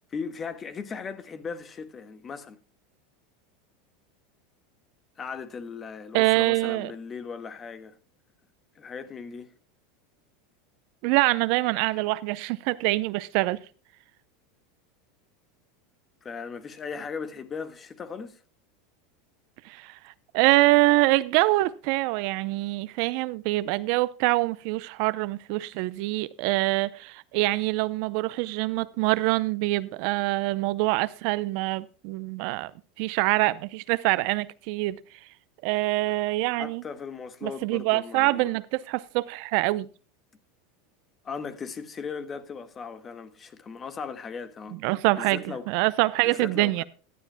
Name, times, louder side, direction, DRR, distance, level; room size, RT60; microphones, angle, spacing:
voice 1, 0.1-2.6 5.2-8.0 8.7-9.5 11.9-12.0 16.2-18.4 36.6-38.5 41.2-44.8 45.2-45.7 46.2-46.8, left 5 dB, 30° left, 1.5 m, -38 dB
voice 2, 6.1-6.9 11.0-13.6 19.6-32.7 33.0-35.0 35.6-36.8 37.4-39.9 44.7-46.8, right 20 dB, 60° right, 0.6 m, -25 dB
17.0 x 12.0 x 2.2 m
hypercardioid pair, 110°, 0 cm